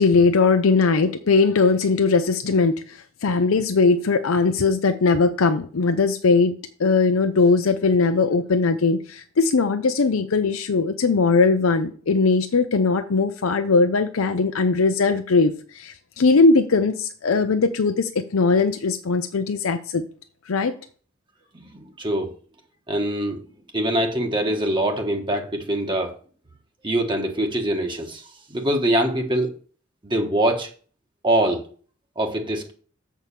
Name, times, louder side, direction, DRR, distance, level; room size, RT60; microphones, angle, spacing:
voice 1, 0.0-20.1 20.5-20.8, left 4 dB, 90° left, 8 dB, 0.6 m, -20 dB
voice 2, 21.5-22.3 22.9-23.4 23.7-26.1 26.8-28.2 28.5-29.5 30.0-30.7 31.2-31.6 32.2-32.7, right 1 dB, 25° right, 3 dB, 1.3 m, -23 dB
7.6 x 4.7 x 7.0 m, 0.43 s
head